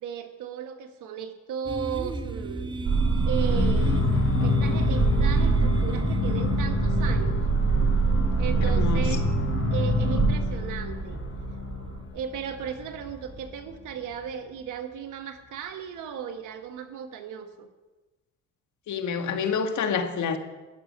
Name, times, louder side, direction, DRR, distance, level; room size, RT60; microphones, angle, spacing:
voice 1, 0.0-2.7 3.3-4.1 4.4-7.4 8.4-9.2 9.7-11.2 12.1-17.7, right 8 dB, 85° right, 6 dB, 1.5 m, -36 dB
sound 1, 1.7-14.6, right 2 dB, 15° right, 0.7 m, -36 dB
sound 2, 2.8-12.0, right 3 dB, 55° right, 2.4 m, -24 dB
sound 3, 3.4-13.4, left 9 dB, 45° left, 0.7 m, -32 dB
voice 2, 8.6-9.3 18.9-20.4, left 6 dB, 70° left, 6 dB, 1.6 m, -28 dB
13.5 x 6.9 x 9.4 m, 1.2 s
cardioid pair, 90°, 30 cm